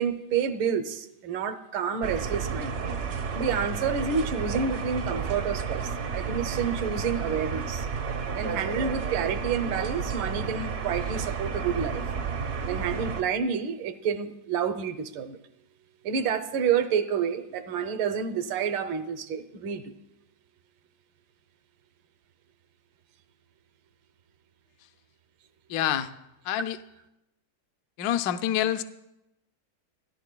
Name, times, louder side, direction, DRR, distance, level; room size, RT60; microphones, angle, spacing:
voice 1, 0.0-2.7 3.3-7.9 8.3-12.0 12.6-15.4 16.0-19.9, right 7 dB, 75° right, 10 dB, 1.5 m, -29 dB
sound 1, 2.0-13.2, right 5 dB, 55° right, 0.7 m, -31 dB
voice 2, 25.7-26.1 26.4-26.8 28.0-28.8, left 11 dB, 75° left, 10 dB, 0.9 m, -27 dB
29.5 x 10.5 x 2.2 m, 0.90 s
omnidirectional pair, 2.2 m